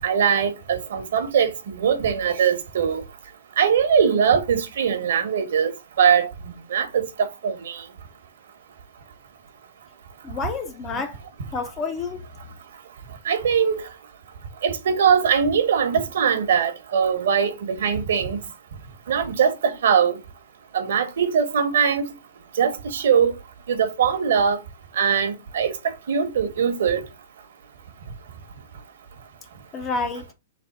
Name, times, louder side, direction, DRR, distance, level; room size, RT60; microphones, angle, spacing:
voice 1, 0.0-3.1 3.6-7.9 13.1-13.9 14.6-18.4 19.1-20.2 20.7-22.1 22.5-23.3 23.7-24.6 24.9-27.1, right 7 dB, 60° right, 1.0 m, -21 dB
voice 2, 10.2-11.2 11.5-12.2 29.7-30.3, left 4 dB, 15° left, 0.4 m, -29 dB
3.4 x 3.0 x 4.1 m
hypercardioid pair, 180°, 0 cm